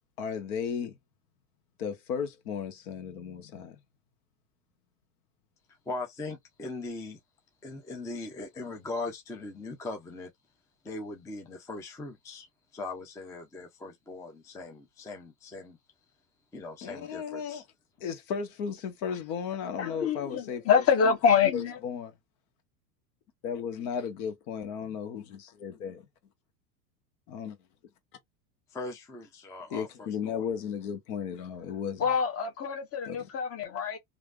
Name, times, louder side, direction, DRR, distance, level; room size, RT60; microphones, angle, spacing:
voice 1, 0.2-1.0 1.8-3.8 16.8-17.6 18.0-21.1 21.5-22.1 23.4-26.0 27.3-27.6 29.7-32.1 33.0-33.3, left 7 dB, 65° left, 1.2 m, -35 dB
voice 2, 5.9-7.2 7.6-10.3 10.8-12.5 12.7-15.8 16.5-17.6 28.7-30.4, left 3 dB, 5° left, 0.4 m, -40 dB
voice 3, 19.8-21.8 32.0-34.0, left 6 dB, 30° left, 1.1 m, -26 dB
3.1 x 2.6 x 2.4 m
supercardioid pair, 115°, 48 cm